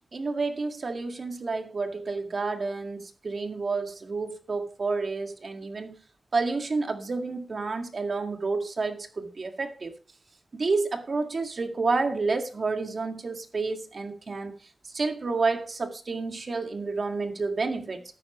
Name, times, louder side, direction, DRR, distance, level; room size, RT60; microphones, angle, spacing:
voice 1, 0.1-6.0 6.3-9.9 10.5-14.5 14.9-18.0, right 3 dB, 65° right, 5 dB, 1.9 m, -30 dB
13.0 x 9.9 x 3.1 m, 0.38 s
cardioid pair, 45°, 0 cm